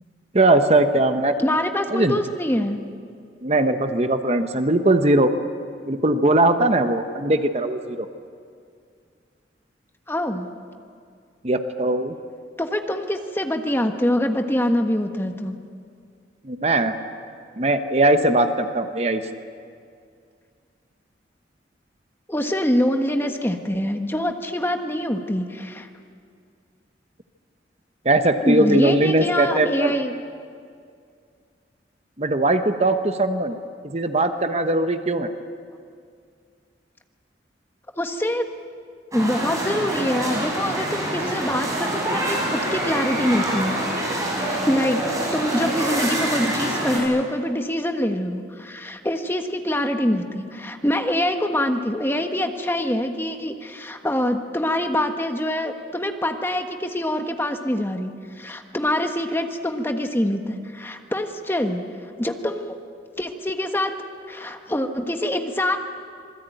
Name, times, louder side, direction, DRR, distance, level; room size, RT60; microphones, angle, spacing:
voice 1, 0.3-1.3 1.9-2.2 3.4-5.3 5.9-8.1 11.4-12.1 16.4-17.0 17.6-19.2 28.0-29.9 32.2-33.6 33.8-35.3, right 2 dB, 35° right, 8 dB, 1.1 m, -20 dB
voice 2, 1.4-2.8 10.1-10.5 12.6-15.6 22.3-25.9 28.4-30.1 38.0-38.5 39.1-45.1 45.3-61.8 62.2-62.8 63.2-63.9 64.3-65.8, left 1 dB, 15° left, 5 dB, 1.4 m, -25 dB
sound 1, 39.1-47.0, right 1 dB, 20° right, 6.6 m, -26 dB
26.5 x 20.5 x 9.2 m, 2.3 s
head